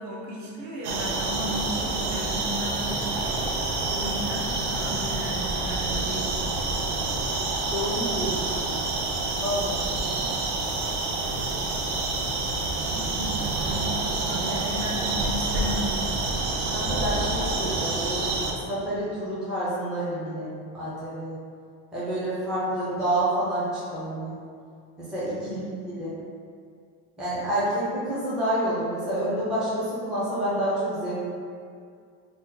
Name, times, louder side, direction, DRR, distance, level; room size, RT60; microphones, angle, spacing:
voice 1, 0.0-3.0 3.9-6.3 12.9-16.0 25.4-26.0, equal, 50° right, -4 dB, 0.7 m, -35 dB
sound 1, 0.8-18.5, right 2 dB, 90° right, 0.6 m, -28 dB
voice 2, 7.7-8.8 9.4-9.9 12.8-13.0 14.3-14.4 16.6-18.2 18.6-21.4 21.9-24.4 25.0-25.6 26.0-26.1 27.2-31.2, right 1 dB, ahead, -11 dB, 0.4 m, -28 dB
2.6 x 2.1 x 3.8 m, 2.3 s
cardioid pair, 170°, 35 cm